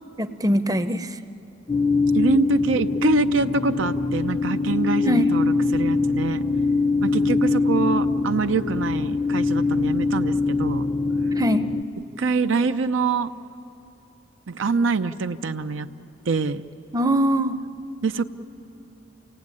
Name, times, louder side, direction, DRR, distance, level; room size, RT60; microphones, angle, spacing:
voice 1, 0.2-1.2 5.1-5.3 11.4-11.7 16.9-17.6, equal, 20° right, 10 dB, 0.6 m, -22 dB
sound 1, 1.7-11.8, left 3 dB, 20° left, 0.6 m, -23 dB
voice 2, 2.1-6.4 7.0-10.9 12.2-13.3 14.5-15.9 16.3-16.6 18.0-18.2, right 4 dB, 85° right, 8 dB, 0.6 m, -24 dB
28.5 x 17.5 x 9.7 m, 3.0 s
head